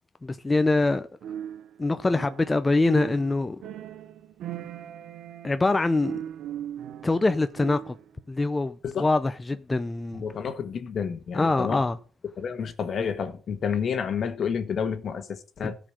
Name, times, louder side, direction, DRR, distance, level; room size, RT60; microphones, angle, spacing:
voice 1, 0.2-1.1 1.8-3.6 5.4-6.2 7.0-8.0 8.3-10.2 11.3-12.0 15.6-15.7, left 2 dB, 20° left, 0.6 m, -24 dB
sound 1, 1.2-8.1, right 10 dB, 75° right, 0.8 m, -38 dB
voice 2, 10.2-11.8 12.4-15.8, left 6 dB, 55° left, 1.5 m, -30 dB
14.0 x 5.1 x 7.5 m
cardioid pair, 90°, 0 cm